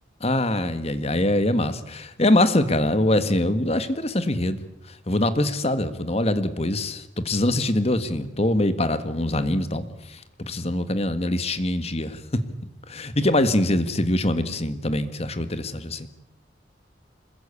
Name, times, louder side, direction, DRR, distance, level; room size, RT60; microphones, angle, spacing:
voice 1, 0.2-4.6 4.9-12.5 12.9-16.1, left 1 dB, 35° left, 11 dB, 1.7 m, -23 dB
26.5 x 22.0 x 8.5 m, 0.84 s
head